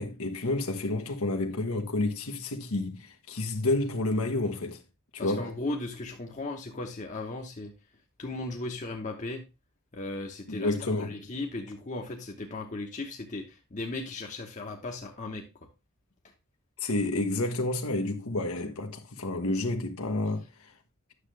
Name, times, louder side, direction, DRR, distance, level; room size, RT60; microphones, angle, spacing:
voice 1, 0.0-4.8 5.1-5.5 10.5-11.2 16.8-20.7, left 2 dB, 75° left, 1.2 m, -30 dB
voice 2, 5.2-7.7 8.2-9.4 9.9-15.4, left 2 dB, 35° left, 1.0 m, -36 dB
9.6 x 6.6 x 3.3 m
head